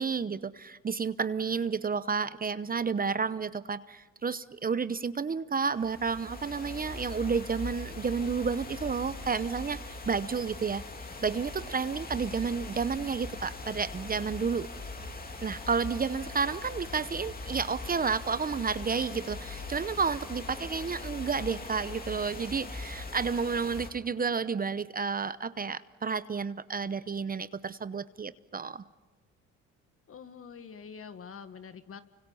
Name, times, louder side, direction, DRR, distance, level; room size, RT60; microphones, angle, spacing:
voice 1, 0.0-10.8 11.2-14.7 15.4-28.8, right 5 dB, 30° right, 14 dB, 0.8 m, -31 dB
sound 1, 5.7-23.9, left 3 dB, 30° left, 2.8 m, -41 dB
voice 2, 30.1-32.0, left 6 dB, 50° left, 10 dB, 1.7 m, -45 dB
29.5 x 25.0 x 5.6 m, 1.3 s
cardioid pair, 85°, 30 cm